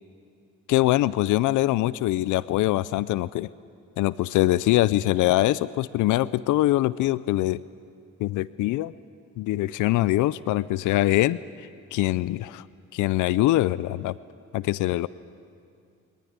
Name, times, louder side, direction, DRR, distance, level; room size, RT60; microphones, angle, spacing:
voice 1, 0.7-3.5 4.0-7.6 8.2-8.9 9.4-12.6 12.9-14.2 14.5-15.1, left 16 dB, 85° left, 19 dB, 0.5 m, -23 dB
24.0 x 19.5 x 9.6 m, 2.4 s
cardioid pair, 90°, 30 cm